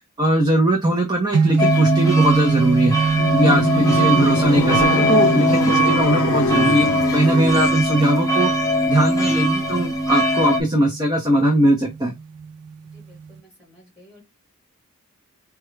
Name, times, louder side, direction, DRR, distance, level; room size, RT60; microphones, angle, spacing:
voice 1, 0.2-2.9 3.3-8.5 8.9-12.1, right 1 dB, 20° right, 0.7 m, -20 dB
sound 1, 1.3-13.4, right 5 dB, 90° right, 0.4 m, -25 dB
sound 2, 1.6-10.6, equal, 15° left, 0.7 m, -21 dB
sound 3, 3.1-7.8, left 4 dB, 70° left, 0.4 m, -25 dB
voice 2, 12.9-14.2, left 1 dB, 5° right, 2.7 m, -52 dB
4.3 x 2.3 x 3.1 m
head